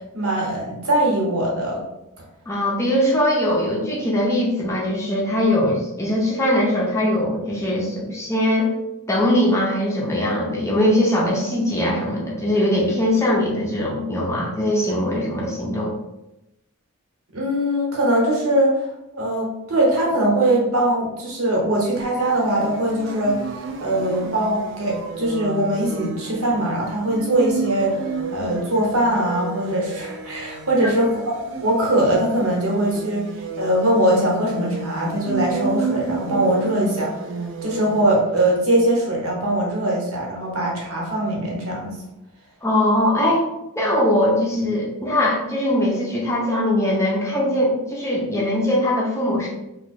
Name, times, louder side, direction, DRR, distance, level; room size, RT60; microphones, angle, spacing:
voice 1, 0.1-1.8 17.3-18.7 19.1-23.4 23.8-31.1 31.6-37.1 37.6-42.0, right 1 dB, 75° right, -3 dB, 1.2 m, -21 dB
voice 2, 2.5-8.7 9.1-16.0 30.8-30.9 42.6-43.4 43.8-49.5, left 1 dB, 15° left, -3 dB, 0.6 m, -21 dB
sound 1, 22.0-38.6, right 4 dB, 55° right, 0.4 m, -32 dB
3.0 x 2.3 x 4.2 m, 0.93 s
head